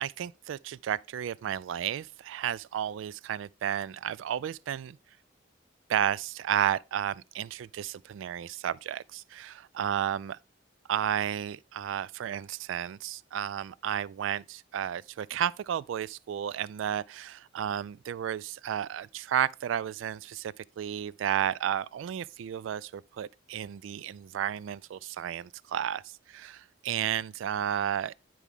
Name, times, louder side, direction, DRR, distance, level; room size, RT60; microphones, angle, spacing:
voice 1, 0.0-5.0 5.9-10.4 10.9-28.1, right 9 dB, 75° right, 0.3 m, -32 dB
10.0 x 4.7 x 3.6 m
head